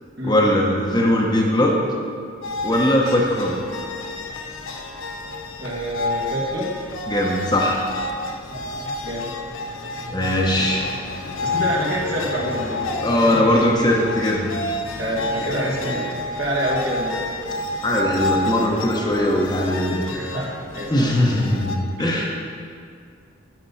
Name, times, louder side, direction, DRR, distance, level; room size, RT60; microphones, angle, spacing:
voice 1, 0.2-1.8 2.6-3.6 7.1-7.9 10.1-10.9 13.0-14.6 17.8-20.0 20.9-22.3, left 1 dB, 20° left, -2 dB, 1.1 m, -20 dB
sound 1, 2.4-21.8, left 2 dB, 90° left, 0.8 m, -29 dB
voice 2, 5.6-6.7 8.4-9.3 9.7-9.8 10.6-10.9 11.4-13.0 13.2-13.6 15.0-17.2 20.1-21.1 22.0-22.3, equal, 60° right, -4 dB, 2.1 m, -28 dB
12.0 x 5.7 x 5.7 m, 2.2 s
head